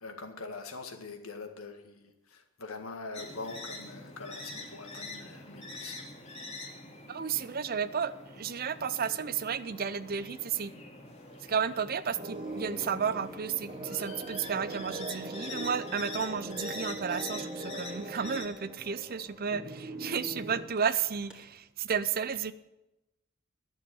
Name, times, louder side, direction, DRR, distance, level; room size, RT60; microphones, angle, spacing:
voice 1, 0.0-6.1, left 3 dB, 80° left, 6 dB, 1.8 m, -43 dB
sound 1, 3.1-18.5, left 2 dB, 30° left, 2.4 m, -45 dB
voice 2, 7.1-10.7 11.5-22.5, right 7 dB, 45° right, 15 dB, 0.6 m, -32 dB
sound 2, 12.1-21.4, equal, 5° right, 2.2 m, -52 dB
sound 3, 12.2-20.7, right 2 dB, 30° right, 1.1 m, -41 dB
11.5 x 7.3 x 9.8 m, 0.94 s
head